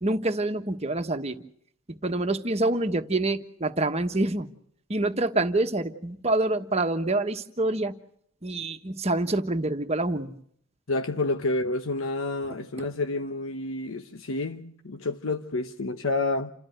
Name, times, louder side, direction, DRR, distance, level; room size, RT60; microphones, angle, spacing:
voice 1, 0.0-1.4 1.9-4.5 4.9-7.9 8.4-10.3, right 2 dB, 30° right, 1.2 m, -26 dB
voice 2, 10.9-16.5, left 2 dB, 85° left, 0.9 m, -29 dB
29.0 x 13.5 x 7.8 m
head